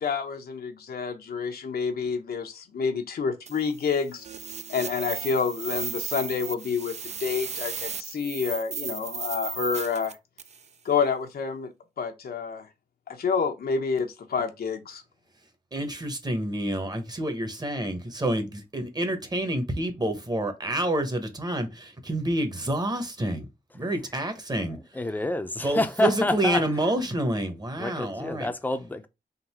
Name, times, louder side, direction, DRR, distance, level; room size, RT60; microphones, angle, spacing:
voice 1, 0.0-4.2 4.7-10.2 10.8-11.7 12.0-12.7 13.1-15.0, left 5 dB, 85° left, 0.8 m, -28 dB
sound 1, 3.5-10.7, right 6 dB, 45° right, 0.4 m, -36 dB
voice 2, 15.7-23.5 23.7-24.8 25.6-28.5, right 1 dB, 25° right, 1.0 m, -28 dB
voice 3, 24.7-26.6 27.8-29.1, left 2 dB, 10° left, 0.5 m, -28 dB
3.8 x 2.6 x 4.3 m
wide cardioid pair, 95°, 15 cm